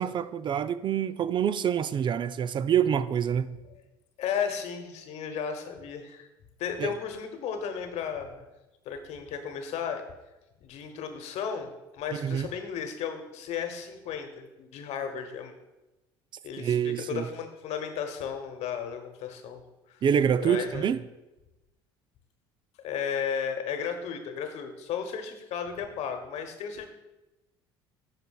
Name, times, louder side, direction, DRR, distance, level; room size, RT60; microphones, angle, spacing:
voice 1, 0.0-3.5 6.8-6.9 12.1-12.5 16.6-17.3 20.0-21.0, right 8 dB, 35° right, 0.3 m, -26 dB
voice 2, 4.2-6.3 6.6-8.4 8.8-10.0 10.6-15.5 16.4-19.6 19.9-20.0 20.4-20.8 22.8-26.9, left 7 dB, 55° left, 1.0 m, -34 dB
12.0 x 4.1 x 2.3 m
hypercardioid pair, 65°, 13 cm